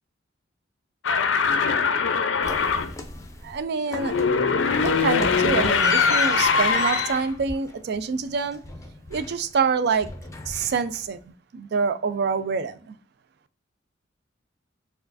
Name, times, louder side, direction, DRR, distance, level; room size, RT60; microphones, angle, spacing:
sound 1, 1.0-2.9 3.9-7.3, left 5 dB, 85° left, 0.5 m, -22 dB
sound 2, 2.4-3.6 3.9-4.4 4.7-9.6 9.9-11.2, left 2 dB, 15° left, 0.5 m, -36 dB
voice 1, 3.4-4.2 4.8-8.6 9.1-10.1 10.5-11.2 11.5-12.9, right 5 dB, 60° right, 13 dB, 0.3 m, -26 dB
4.3 x 2.4 x 2.4 m, 0.41 s
head